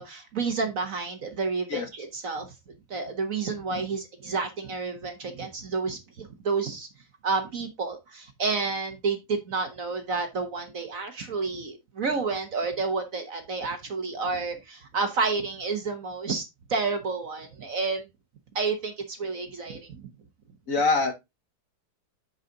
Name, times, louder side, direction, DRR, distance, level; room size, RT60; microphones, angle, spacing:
voice 1, 0.0-2.5 2.9-6.9 7.2-18.1 18.5-20.0, right 4 dB, 50° right, 1.3 m, -30 dB
voice 2, 20.7-21.1, left 3 dB, 50° left, 1.2 m, -24 dB
9.6 x 4.9 x 3.8 m
omnidirectional pair, 2.2 m